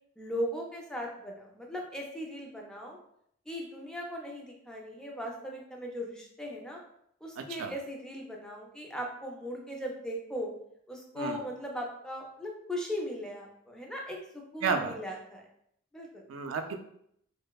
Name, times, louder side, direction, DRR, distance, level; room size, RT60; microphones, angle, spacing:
voice 1, 0.2-3.0 3.5-6.8 7.2-10.5 10.9-15.4 15.9-16.2, equal, 5° left, 0 dB, 0.3 m, -38 dB
voice 2, 7.4-7.7 11.2-11.4 14.6-15.0 16.3-16.8, right 5 dB, 85° right, 6 dB, 0.3 m, -32 dB
2.7 x 2.0 x 2.2 m, 0.71 s
head